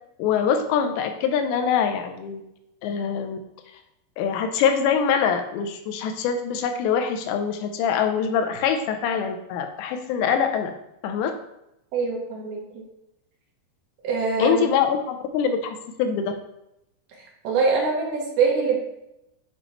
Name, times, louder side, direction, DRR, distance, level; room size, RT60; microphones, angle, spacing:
voice 1, 0.2-2.4 2.8-3.4 4.2-10.7 11.0-11.3 14.4-16.2, left 7 dB, 85° left, 7 dB, 2.8 m, -24 dB
voice 2, 11.9-12.6 14.0-14.7 17.4-18.8, right 4 dB, 70° right, -1 dB, 3.0 m, -23 dB
7.6 x 6.9 x 3.0 m, 0.86 s
omnidirectional pair, 5.1 m